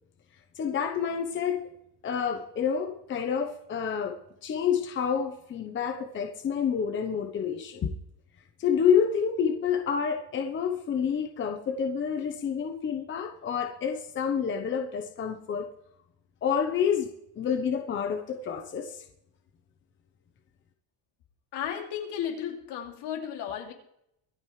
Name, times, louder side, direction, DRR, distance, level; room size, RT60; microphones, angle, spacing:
voice 1, 0.5-1.7 2.0-7.9 8.6-15.7 16.4-17.1 17.4-19.0, left 7 dB, 25° left, 5 dB, 0.9 m, -28 dB
voice 2, 21.5-23.7, left 9 dB, 60° left, 2 dB, 2.8 m, -34 dB
24.5 x 8.9 x 3.3 m, 0.77 s
cardioid pair, 175°, 46 cm